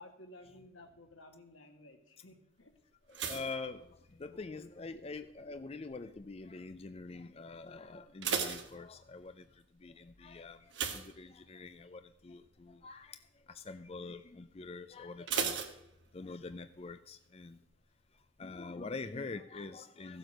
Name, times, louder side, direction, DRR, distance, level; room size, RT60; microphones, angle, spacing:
voice 1, 0.0-2.8, left 2 dB, 85° left, 4 dB, 2.1 m, -55 dB
voice 2, 3.1-9.5 9.8-13.2 13.5-15.6 16.1-17.6 18.4-20.2, left 3 dB, 30° left, 10 dB, 0.4 m, -45 dB
sound 1, 3.1-4.6 4.9-5.4 6.0-6.4 6.6-6.7 7.1-7.2 7.9-9.4 10.7-11.8 12.2-12.5 12.8-12.9 15.3-16.5 16.7-16.8, right 6 dB, 65° right, 1.5 m, -37 dB
15.0 x 7.9 x 6.3 m, 0.77 s
head